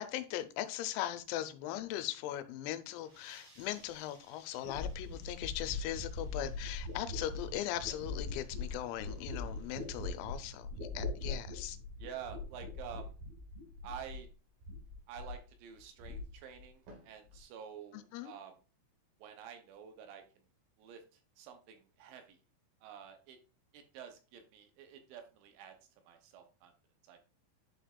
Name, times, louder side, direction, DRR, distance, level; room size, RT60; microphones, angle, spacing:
voice 1, 0.0-10.7 10.9-11.8 17.9-18.3, left 13 dB, 90° left, 3.3 m, -39 dB
sound 1, 2.8-10.2, right 1 dB, 25° right, 2.4 m, -66 dB
sound 2, 4.6-14.3 14.6-15.5 15.8-16.6 16.9-17.4, left 3 dB, 55° right, 3.1 m, -42 dB
voice 2, 12.0-13.1 13.8-14.3 15.1-18.6 19.2-20.4 20.8-22.4 22.8-23.4 23.7-26.7 27.0-27.3, right 8 dB, 80° right, 2.9 m, -49 dB
11.0 x 5.1 x 2.4 m
omnidirectional pair, 6.0 m